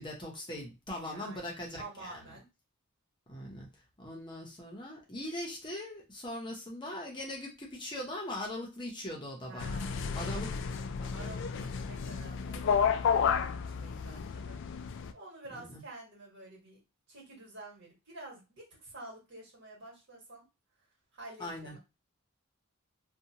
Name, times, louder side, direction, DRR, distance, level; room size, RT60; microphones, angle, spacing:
voice 1, 0.0-2.2 3.3-3.7 4.0-9.7 10.1-10.7 11.0-11.3 15.5-15.8 21.4-21.8, left 1 dB, 20° left, -1 dB, 0.7 m, -40 dB
voice 2, 1.1-2.5 9.4-10.0 11.1-14.6 15.1-16.8 17.1-20.5 21.1-21.8, right 2 dB, 55° right, -3 dB, 1.6 m, -49 dB
sound 1, 9.6-15.1, left 6 dB, 60° left, 0.3 m, -32 dB
2.7 x 2.2 x 2.8 m, 0.26 s
head